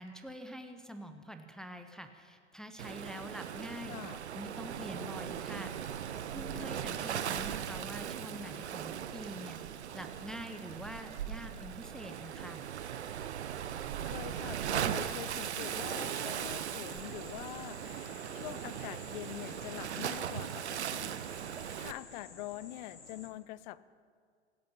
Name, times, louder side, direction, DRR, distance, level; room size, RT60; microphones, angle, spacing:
voice 1, 0.0-3.9 4.3-5.7 6.3-9.6 9.9-12.6, equal, ahead, 6 dB, 1.0 m, -45 dB
Waves surf, 2.8-21.9, right 9 dB, 70° right, 0.9 m, -38 dB
voice 2, 3.9-4.2 14.0-21.1 21.8-23.8, left 15 dB, 40° left, 19 dB, 0.6 m, -45 dB
sound 1, 15.5-23.3, left 4 dB, 75° left, 4.9 m, -53 dB
26.0 x 8.7 x 5.6 m, 2.1 s
figure-of-eight pair, 95°, 35 cm